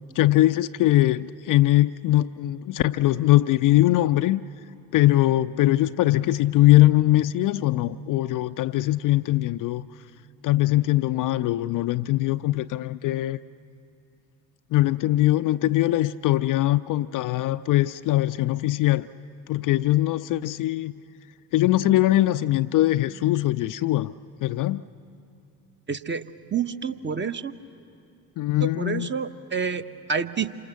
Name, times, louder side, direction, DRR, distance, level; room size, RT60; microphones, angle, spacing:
voice 1, 0.2-4.4 4.9-9.8 10.4-13.4 14.7-19.1 19.5-20.9 21.5-24.1 24.4-24.9 28.4-29.1, left 16 dB, 45° left, 0.5 m, -21 dB
voice 2, 25.9-26.3 26.5-27.5 28.6-30.5, right 6 dB, 25° right, 0.9 m, -28 dB
28.0 x 26.0 x 7.0 m
figure-of-eight pair, 50°, 47 cm